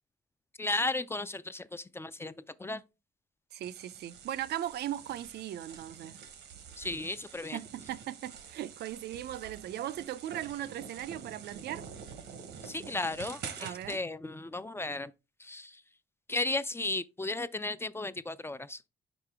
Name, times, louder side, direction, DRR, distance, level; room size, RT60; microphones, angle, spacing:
voice 1, 0.6-2.8 6.8-7.6 12.6-15.1 15.4-15.8 16.3-18.8, left 2 dB, 15° left, 0.3 m, -35 dB
voice 2, 3.5-6.2 7.5-11.8 13.6-14.0, right 12 dB, 70° right, 0.4 m, -38 dB
sound 1, 3.6-14.0, right 7 dB, 90° right, 0.9 m, -47 dB
5.4 x 5.1 x 3.4 m
cardioid pair, 95°, 17 cm